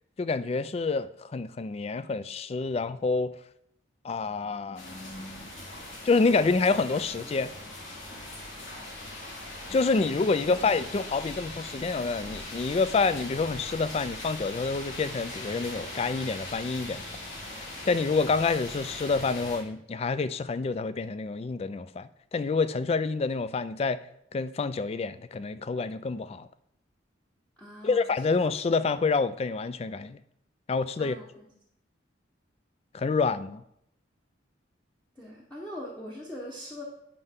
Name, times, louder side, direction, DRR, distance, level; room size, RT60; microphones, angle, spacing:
voice 1, 0.2-3.3 4.0-5.5 6.0-7.5 9.7-17.0 17.9-24.0 24.3-26.5 27.8-30.2 30.7-31.2 32.9-33.6, left 4 dB, 30° left, 0.3 m, -28 dB
sound 1, 4.7-19.6, left 1 dB, 90° left, 3.1 m, -40 dB
voice 2, 27.6-28.1 31.0-31.5 35.2-36.8, left 1 dB, 5° left, 1.0 m, -41 dB
9.7 x 5.3 x 3.6 m
head